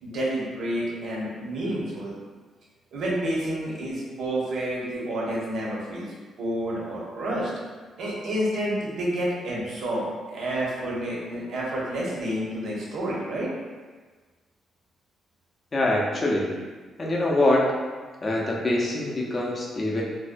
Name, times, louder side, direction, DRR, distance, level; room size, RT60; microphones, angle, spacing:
voice 1, 0.0-2.1 2.9-7.5 8.0-10.1 10.3-13.5, right 1 dB, 65° right, -4 dB, 0.7 m, -29 dB
voice 2, 15.7-16.5 17.0-17.7 18.2-20.0, left 1 dB, 30° left, -2 dB, 0.5 m, -24 dB
2.6 x 2.1 x 2.5 m, 1.4 s
cardioid pair, 115°, 0 cm